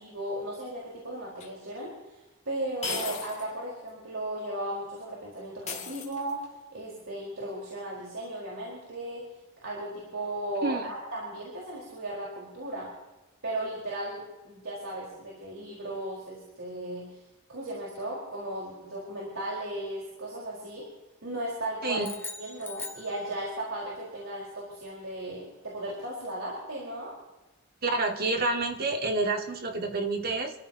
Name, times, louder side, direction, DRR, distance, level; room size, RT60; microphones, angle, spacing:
voice 1, 0.0-6.4 6.7-9.2 9.6-12.9 13.4-17.2 17.5-20.9 21.2-22.1 22.4-27.1, right 1 dB, 65° right, -5 dB, 4.4 m, -36 dB
sound 1, 1.4-1.5 2.8-3.5 3.9-4.0 5.7-6.5, left 4 dB, 30° left, 2.6 m, -36 dB
sound 2, 22.0-23.8, left 3 dB, 10° left, 1.4 m, -41 dB
voice 2, 27.8-30.5, right 3 dB, 45° right, 3 dB, 2.0 m, -28 dB
26.5 x 14.0 x 2.9 m, 1.1 s
head